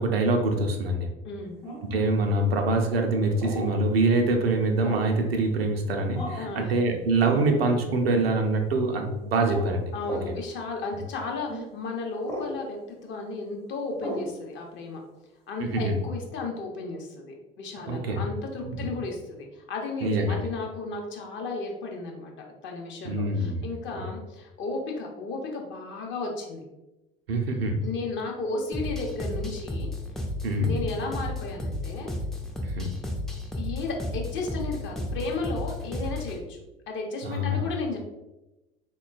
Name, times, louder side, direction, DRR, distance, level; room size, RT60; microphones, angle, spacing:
voice 1, 0.0-1.1 1.9-9.9 15.6-16.0 17.9-18.2 18.6-18.9 20.0-20.4 23.0-23.7 23.9-24.1 27.3-27.8 30.4-30.7 32.6-32.9 37.2-37.6, right 2 dB, 80° right, 4 dB, 0.5 m, -25 dB
voice 2, 1.2-1.6 6.4-6.7 7.2-7.6 9.5-15.0 15.5-22.3 22.6-26.6 27.8-29.9 30.6-32.1 33.5-36.6 36.9-38.0, left 3 dB, 40° left, 1 dB, 0.7 m, -34 dB
sound 1, 1.6-2.0 3.4-3.7 4.8-5.2 6.1-6.5 7.3-7.5 8.1-8.3 9.4-9.6 10.0-10.3 11.5-11.6 12.2-12.5 14.0-14.3, equal, 85° left, 1.0 m, -35 dB
sound 2, 28.7-36.4, left 1 dB, ahead, 0.3 m, -33 dB
3.6 x 2.2 x 2.4 m, 1.0 s
figure-of-eight pair, 60°, 29 cm